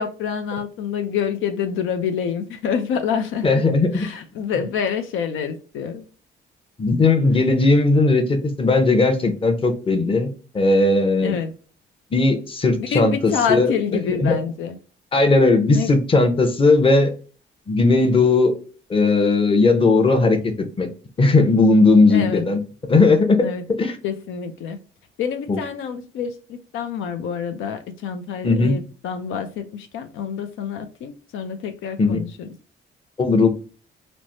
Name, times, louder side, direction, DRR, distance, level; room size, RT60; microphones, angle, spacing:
voice 1, 0.0-3.5 3.9-6.1 11.2-11.5 12.8-14.8 15.7-15.9 22.1-22.4 23.4-23.6 24.0-24.8 25.2-32.5, left 7 dB, 80° left, 0.4 m, -27 dB
voice 2, 3.4-4.0 6.8-10.3 10.5-11.4 12.1-13.7 14.2-14.4 15.1-17.1 17.7-18.6 18.9-20.5 20.8-20.9 21.2-22.6 22.9-23.4 23.8-23.9 25.5-25.6 28.4-28.7 32.0-32.2 33.2-33.5, left 3 dB, 25° left, 0.7 m, -17 dB
3.2 x 2.0 x 2.6 m
cardioid pair, 90°, 20 cm